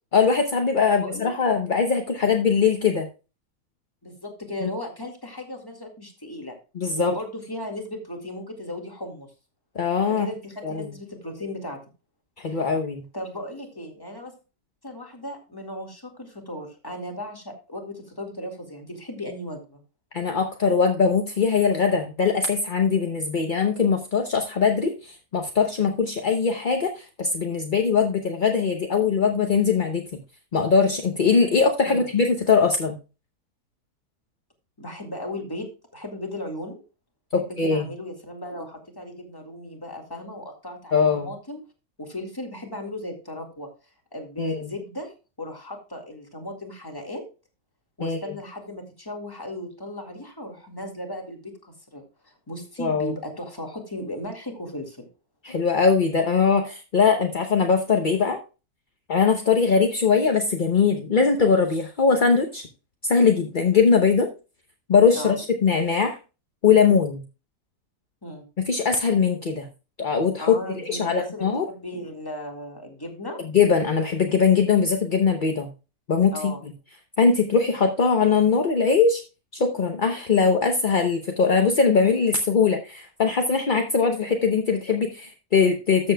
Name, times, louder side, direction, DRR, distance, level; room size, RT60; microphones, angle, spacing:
voice 1, 0.1-3.1 4.6-4.7 6.8-7.1 9.7-10.3 10.6-10.9 12.4-13.0 20.1-30.0 30.5-33.0 37.3-37.9 40.9-41.3 44.4-44.7 48.0-48.2 52.8-53.1 55.4-58.4 59.1-62.7 63.0-64.3 64.9-65.4 65.6-66.2 66.6-67.2 68.7-69.7 70.0-70.6 70.8-71.7 73.5-75.7 76.1-76.5 77.2-79.2 79.5-86.1, left 5 dB, 40° left, 4 dB, 0.8 m, -21 dB
voice 2, 0.9-1.5 4.0-6.6 7.0-9.3 10.1-11.8 12.5-12.7 13.1-14.3 14.8-19.8 31.8-32.1 34.8-36.8 37.4-41.6 42.0-43.7 44.1-45.1 45.4-47.2 48.0-55.1 65.1-65.4 68.2-68.5 70.4-73.4 76.3-76.6, left 1 dB, 15° left, 3 dB, 2.0 m, -36 dB
13.5 x 7.6 x 2.3 m, 0.31 s
omnidirectional pair, 1.8 m